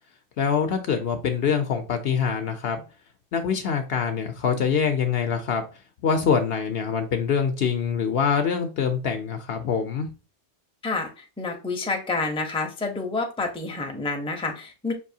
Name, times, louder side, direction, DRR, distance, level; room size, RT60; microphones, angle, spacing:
voice 1, 0.4-2.8 3.3-5.6 6.0-10.1, left 6 dB, 65° left, 0.8 m, -24 dB
voice 2, 10.8-14.9, left 3 dB, 5° left, 0.6 m, -29 dB
5.3 x 2.6 x 2.7 m
omnidirectional pair, 1.2 m